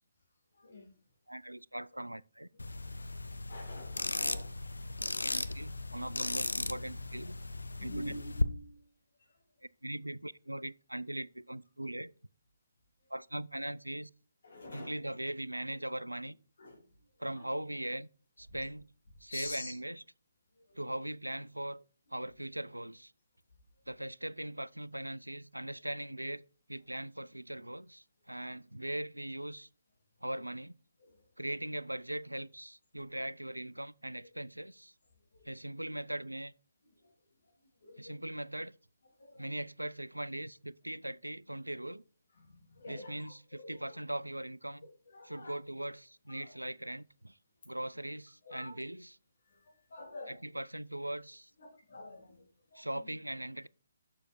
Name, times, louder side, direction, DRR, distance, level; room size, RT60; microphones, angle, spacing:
voice 1, 0.5-0.9 3.3-4.5 7.8-8.8 9.2-9.3 14.4-15.0 16.6-16.8 17.3-17.5 19.3-19.7 20.7-20.8 31.1-31.2 35.3-35.4 37.0-37.1 37.8-38.1 39.2-39.4 42.4-43.8 45.1-45.5 46.3-46.5 48.5-48.8 49.5-50.4 51.6-52.4 52.7-52.8, left 1 dB, 55° left, 3.0 m, -47 dB
voice 2, 1.3-2.5 5.2-7.4 7.8-8.1 9.8-12.1 13.1-14.1 14.7-16.4 17.2-18.1 18.4-18.9 19.2-20.0 20.7-21.8 22.1-23.1 23.9-26.4 26.7-29.7 30.2-30.7 31.4-34.9 35.4-36.5 38.0-38.7 39.4-42.0 42.9-44.9 45.2-47.4 47.7-49.2 50.3-51.5 52.7-53.7, right 1 dB, 90° right, 0.3 m, -40 dB
sound 1, 2.6-8.4, left 2 dB, 75° left, 0.5 m, -36 dB
7.0 x 6.5 x 4.4 m
figure-of-eight pair, 140°, 0 cm